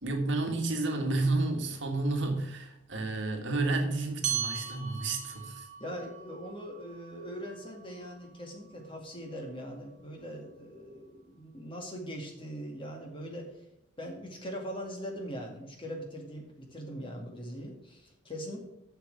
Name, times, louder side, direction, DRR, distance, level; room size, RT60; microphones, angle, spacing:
voice 1, 0.0-5.7, right 2 dB, 65° right, 3 dB, 1.7 m, -31 dB
sound 1, 4.2-9.0, right 8 dB, 40° right, 1.0 m, -39 dB
voice 2, 5.8-13.6 14.0-18.6, equal, 25° left, 1 dB, 2.0 m, -41 dB
8.0 x 6.9 x 6.4 m, 0.82 s
head